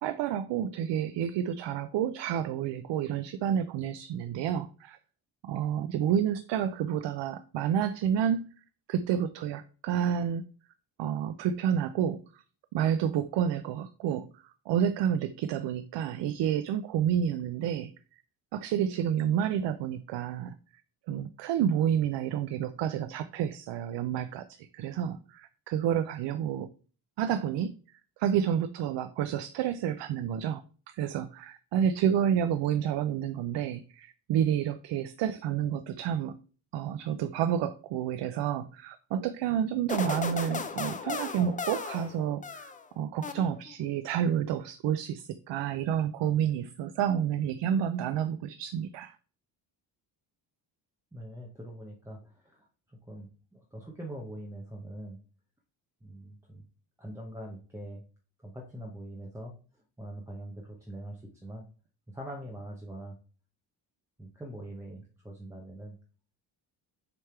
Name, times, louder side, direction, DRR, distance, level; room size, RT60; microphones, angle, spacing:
voice 1, 0.0-5.0 5.4-8.5 8.9-10.4 11.0-12.4 12.7-17.9 18.5-20.5 21.1-26.7 27.2-27.7 28.2-36.4 36.7-49.2, right 9 dB, 85° right, 11 dB, 0.6 m, -29 dB
sound 1, 39.9-42.8 43.2-43.9, left 5 dB, 20° left, 0.4 m, -36 dB
voice 2, 51.1-55.2 56.0-56.6 57.0-58.0 58.4-61.6 62.1-63.2 64.2-65.9, right 1 dB, 5° right, -1 dB, 0.8 m, -43 dB
6.9 x 3.4 x 4.4 m, 0.38 s
cardioid pair, 160°, 42 cm